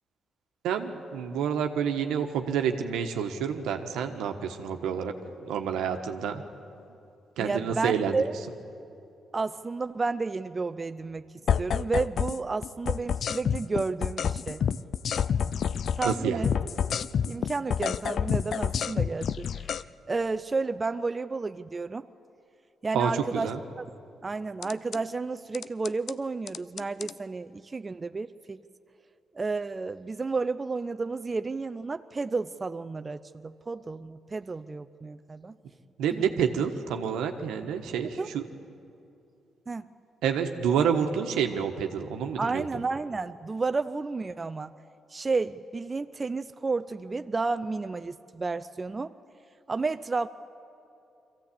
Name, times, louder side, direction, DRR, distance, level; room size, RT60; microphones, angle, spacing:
voice 1, 0.6-5.1 5.4-6.4 7.4-8.2 16.0-16.5 22.9-23.6 36.0-38.4 40.2-42.7, right 7 dB, 85° right, 5 dB, 1.3 m, -28 dB
voice 2, 7.4-8.4 9.3-11.3 11.6-14.6 16.0-16.5 17.2-19.7 20.1-22.1 22.8-23.5 23.8-23.9 24.2-28.6 29.3-35.6 36.2-36.3 38.2-38.3 39.7-39.9 42.4-44.7 45.1-49.1 49.7-50.3, right 3 dB, 30° right, 9 dB, 0.5 m, -31 dB
sound 1, 11.5-12.4 12.6-16.2 16.4-19.8 24.6-25.0 25.5-26.1 26.5-27.1, left 8 dB, 65° left, 0.4 m, -28 dB
22.5 x 15.5 x 8.6 m, 2.7 s
supercardioid pair, 65°, 0 cm